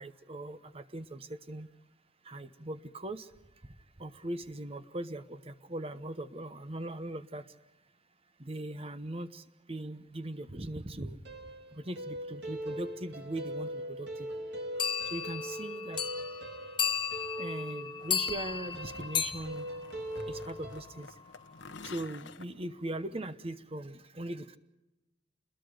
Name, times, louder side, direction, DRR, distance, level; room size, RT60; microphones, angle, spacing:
voice 1, 0.0-1.7 2.3-3.3 4.0-7.4 8.4-9.4 9.7-11.2 11.7-14.3 15.1-16.0 17.4-19.7 20.3-21.1 21.8-24.6, right 1 dB, 30° right, 12 dB, 1.0 m, -40 dB
sound 1, 11.3-20.8, equal, 60° right, 2.1 m, -41 dB
sound 2, 14.8-20.7, left 7 dB, 25° left, 0.8 m, -35 dB
sound 3, 18.0-23.3, left 4 dB, 70° left, 1.0 m, -51 dB
28.5 x 21.5 x 5.1 m, 0.99 s
head